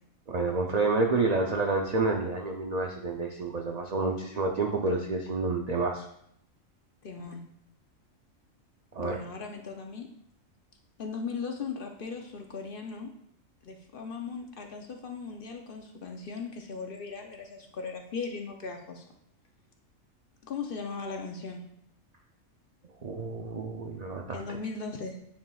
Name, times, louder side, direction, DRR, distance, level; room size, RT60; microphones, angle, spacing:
voice 1, 0.3-6.1 8.9-9.2 23.0-24.4, right 3 dB, 75° right, 2 dB, 0.3 m, -29 dB
voice 2, 7.0-7.4 9.0-10.1 11.0-13.1 13.6-19.0 20.4-21.6 24.3-25.2, left 5 dB, 55° left, 3 dB, 0.7 m, -38 dB
9.3 x 4.3 x 2.3 m, 0.72 s
omnidirectional pair, 1.4 m